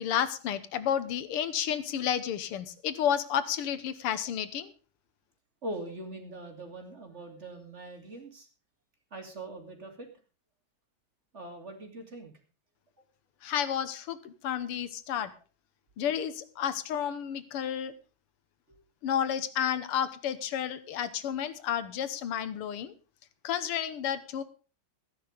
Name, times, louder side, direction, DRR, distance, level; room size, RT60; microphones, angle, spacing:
voice 1, 0.0-4.7 13.4-15.3 16.0-17.9 19.0-22.9 23.4-24.4, left 9 dB, 85° left, 13 dB, 2.0 m, -31 dB
voice 2, 5.6-8.5 9.1-10.1 11.3-12.3 18.7-18.8, right 1 dB, 30° right, 3 dB, 3.0 m, -42 dB
15.0 x 10.5 x 5.1 m, 0.37 s
omnidirectional pair, 2.4 m